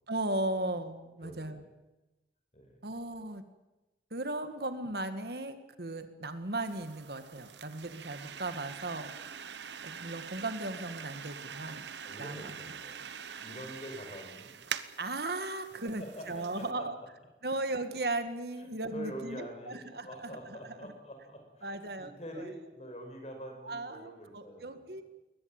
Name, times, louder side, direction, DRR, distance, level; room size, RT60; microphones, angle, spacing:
voice 1, 0.1-1.7 2.8-3.4 4.1-9.3 9.8-11.9 12.2-12.6 15.0-17.0 17.4-20.6 21.6-22.1 22.4-22.5 23.6-25.0, right 2 dB, 60° right, 9 dB, 1.8 m, -37 dB
voice 2, 1.2-1.6 2.5-2.8 12.0-13.0 13.4-14.5 15.8-16.9 18.6-24.8, equal, 35° left, 4 dB, 5.7 m, -46 dB
sound 1, 6.6-16.7, right 7 dB, 80° right, 1.1 m, -44 dB
22.0 x 19.5 x 8.9 m, 1.0 s
head